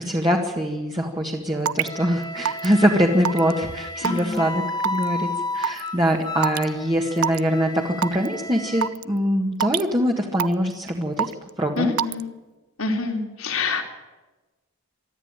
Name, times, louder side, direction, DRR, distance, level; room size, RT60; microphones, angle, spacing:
voice 1, 0.0-11.3 11.6-11.9, equal, 20° right, 0 dB, 1.8 m, -23 dB
Raindrop / Water tap faucet / Drip, 1.7-1.9 2.5-2.7 3.3-3.5 4.0-4.4 4.8-5.0 5.6-5.8 6.4-6.6 7.2-7.4 8.0-8.3 8.8-9.0 9.6-9.9 10.4-10.7 11.2-11.5 12.0-12.2, right 8 dB, 85° right, 0.6 m, -24 dB
Wind instrument woodwind instrument, 1.8-8.9, left 2 dB, 20° left, 1.1 m, -33 dB
voice 2, 4.0-4.4 11.8-12.3 12.8-13.8, left 4 dB, 75° left, 3 dB, 3.4 m, -26 dB
23.0 x 13.5 x 9.0 m, 1.2 s
head